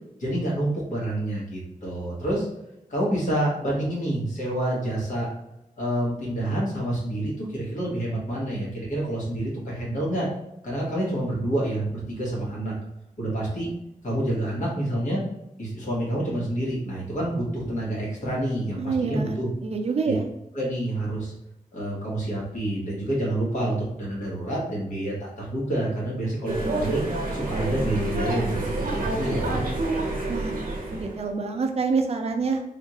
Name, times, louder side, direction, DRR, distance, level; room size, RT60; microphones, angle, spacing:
voice 1, 0.2-2.5 2.9-5.3 5.8-10.3 10.6-12.7 13.2-13.7 14.0-15.2 15.6-19.5 20.0-20.1 20.5-21.3 21.7-27.0 27.3-29.6, right 1 dB, 65° left, -4 dB, 1.3 m, -28 dB
voice 2, 18.8-19.4 19.6-20.2 30.3-30.6 31.0-32.6, right 4 dB, 45° right, 4 dB, 0.4 m, -26 dB
sound 1, 26.5-31.2, right 2 dB, 80° right, 0.8 m, -28 dB
3.5 x 2.5 x 2.9 m, 0.88 s
wide cardioid pair, 165°, 14 cm